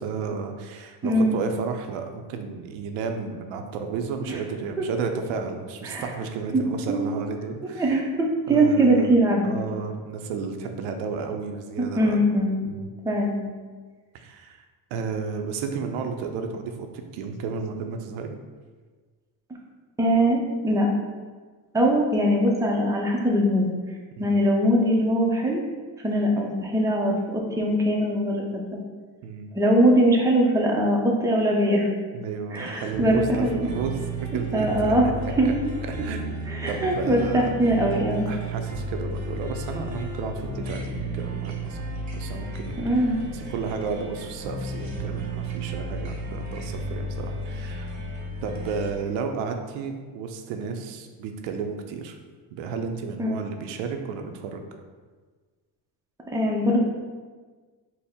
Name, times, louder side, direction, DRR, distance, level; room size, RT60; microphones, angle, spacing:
voice 1, 0.0-8.0 8.5-9.2 9.4-12.2 12.6-12.9 14.1-14.6 14.9-18.4 24.1-24.4 29.2-29.5 32.1-35.1 35.4-35.5 35.9-37.5 38.3-41.8 42.1-47.9 48.4-52.2 52.5-54.6, right 5 dB, 85° right, 5 dB, 0.6 m, -32 dB
voice 2, 1.0-1.4 5.8-6.0 6.5-7.0 7.6-9.5 11.8-12.6 13.0-13.4 20.0-20.4 20.6-20.9 21.7-23.7 24.2-25.6 26.0-27.1 27.6-28.6 29.5-31.9 32.5-33.5 34.5-35.0 35.4-35.5 36.5-38.3 42.8-43.2 53.2-53.4 56.3-56.8, right 1 dB, 10° right, -1 dB, 0.5 m, -21 dB
sound 1, 32.5-48.9, right 1 dB, 40° right, 0.8 m, -33 dB
4.1 x 2.1 x 3.5 m, 1.4 s
cardioid pair, 95°, 44 cm